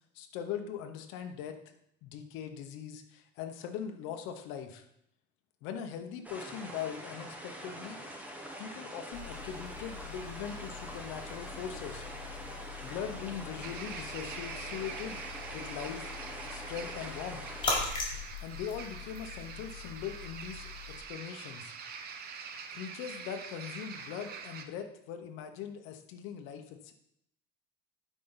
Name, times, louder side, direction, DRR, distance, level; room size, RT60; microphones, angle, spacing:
voice 1, 0.1-1.6 2.0-4.8 5.6-8.0 8.6-12.0 12.8-15.2 15.5-16.1 16.5-17.4 18.4-21.7 22.7-26.9, left 8 dB, 80° left, 5 dB, 1.0 m, -41 dB
Zen Ocean Waves Ocean Waves Ambience, 6.2-17.7, equal, 5° right, 1.3 m, -44 dB
sound 1, 9.1-21.0, left 3 dB, 25° left, 3.9 m, -41 dB
sound 2, 13.6-24.7, right 6 dB, 50° right, 0.9 m, -45 dB
12.0 x 5.1 x 4.0 m, 0.74 s
cardioid pair, 130°, 20 cm